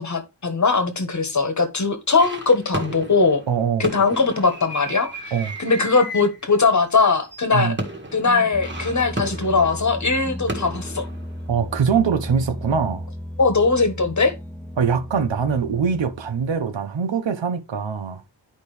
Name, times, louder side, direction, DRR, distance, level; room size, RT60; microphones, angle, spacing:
voice 1, 0.0-3.4 3.8-5.3 5.6-7.7 8.1-11.0 13.4-14.3, left 4 dB, 40° left, 1.5 m, -20 dB
sound 1, 2.2-11.9, right 1 dB, 25° right, 1.9 m, -34 dB
voice 2, 3.5-3.8 5.3-5.6 7.5-7.8 11.5-13.1 14.8-18.2, right 6 dB, 75° right, 1.1 m, -23 dB
sound 2, 8.0-16.8, left 1 dB, 5° left, 0.4 m, -35 dB
11.5 x 5.2 x 3.3 m
wide cardioid pair, 165°, 45 cm